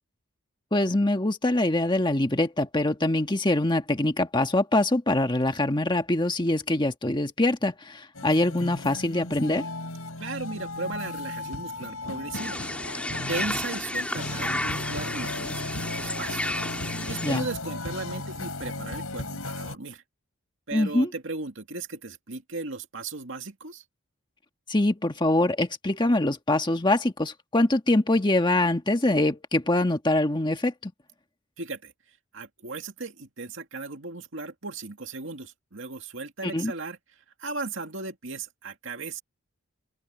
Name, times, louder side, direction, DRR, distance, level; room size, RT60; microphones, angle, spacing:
voice 1, 0.7-9.7 17.2-17.5 20.7-21.1 24.7-30.9 36.4-36.7, left 1 dB, 20° left, 1.5 m, -24 dB
sound 1, 8.1-19.8, left 2 dB, 90° left, 6.8 m, -36 dB
voice 2, 10.2-12.6 13.3-16.4 17.1-20.0 20.7-23.8 31.6-31.9 32.3-37.0 37.4-39.2, right 3 dB, 60° right, 2.5 m, -36 dB
sound 2, 12.3-17.4, left 1 dB, 5° left, 2.9 m, -32 dB
head